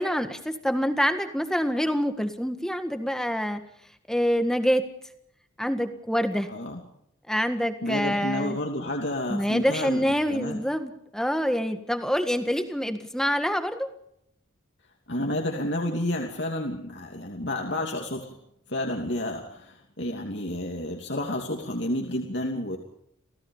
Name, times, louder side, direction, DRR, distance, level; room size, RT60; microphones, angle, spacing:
voice 1, 0.0-3.6 4.1-4.9 5.6-6.5 7.3-8.6 9.3-13.9, equal, 5° left, 8 dB, 1.7 m, -26 dB
voice 2, 6.5-6.8 7.8-10.6 15.1-18.3 18.7-22.8, left 1 dB, 60° left, 1 dB, 2.9 m, -30 dB
28.5 x 17.0 x 5.6 m, 0.73 s
head